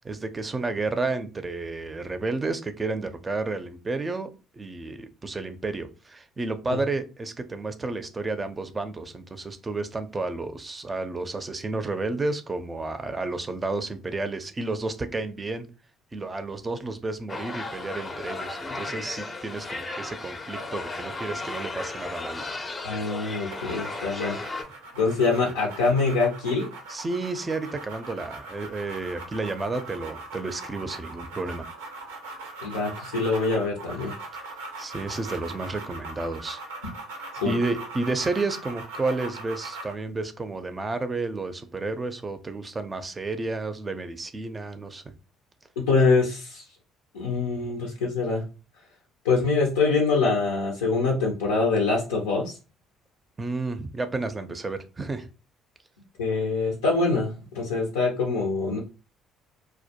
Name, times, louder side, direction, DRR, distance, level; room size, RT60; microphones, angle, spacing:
voice 1, 0.0-15.7 16.1-22.4 26.9-31.7 34.3-34.4 34.8-36.6 37.4-45.0 53.4-55.3, right 3 dB, 30° right, 10 dB, 0.4 m, -31 dB
sound 1, 17.3-24.6, left 3 dB, 35° left, 0.5 m, -35 dB
voice 2, 22.8-24.4 25.0-26.6 32.6-34.1 37.4-37.5 45.9-46.6 47.1-48.4 49.2-52.5 56.2-58.8, left 4 dB, 90° left, -1 dB, 0.5 m, -24 dB
sound 2, 23.5-40.0, right 3 dB, 90° right, 0.5 m, -40 dB
2.1 x 2.1 x 2.7 m, 0.31 s
hypercardioid pair, 60°, 0 cm